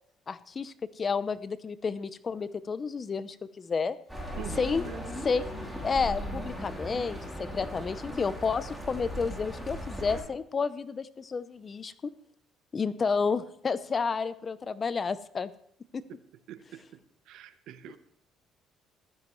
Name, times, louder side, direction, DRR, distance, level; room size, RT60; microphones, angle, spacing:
voice 1, 0.3-4.0 4.6-4.8 5.2-5.5 5.8-12.1 12.7-15.5 15.9-16.0, left 5 dB, 30° left, 15 dB, 0.7 m, -31 dB
sound 1, 4.1-10.2, equal, ahead, 3.2 m, -38 dB
voice 2, 4.4-5.0 16.5-17.0 17.3-18.0, right 11 dB, 80° right, 12 dB, 0.8 m, -44 dB
15.5 x 12.5 x 3.1 m, 0.65 s
cardioid pair, 115°, 0 cm